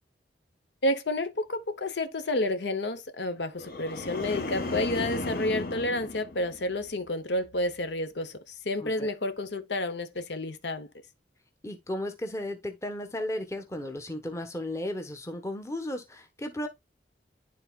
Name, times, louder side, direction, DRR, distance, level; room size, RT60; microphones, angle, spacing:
voice 1, 0.8-10.9, left 1 dB, 75° left, 0.8 m, -30 dB
sound 1, 3.6-7.0 7.4-7.8, left 2 dB, 55° left, 1.3 m, -35 dB
voice 2, 8.8-9.1 11.6-16.7, left 1 dB, 15° left, 1.1 m, -35 dB
11.5 x 4.0 x 2.3 m
head